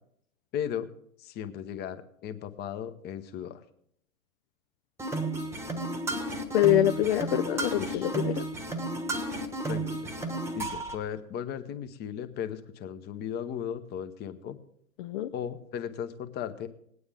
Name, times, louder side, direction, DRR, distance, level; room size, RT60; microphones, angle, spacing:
voice 1, 0.5-0.9 1.2-3.6 7.7-8.1 9.7-10.1 10.5-14.6 15.3-16.7, left 9 dB, 25° left, 10 dB, 0.9 m, -36 dB
sound 1, 5.0-11.0, right 2 dB, 5° right, 1.2 m, -33 dB
voice 2, 6.5-8.4 15.0-15.3, left 13 dB, 40° left, 8 dB, 0.5 m, -25 dB
18.5 x 9.6 x 3.5 m, 0.68 s
hypercardioid pair, 115°, 44 cm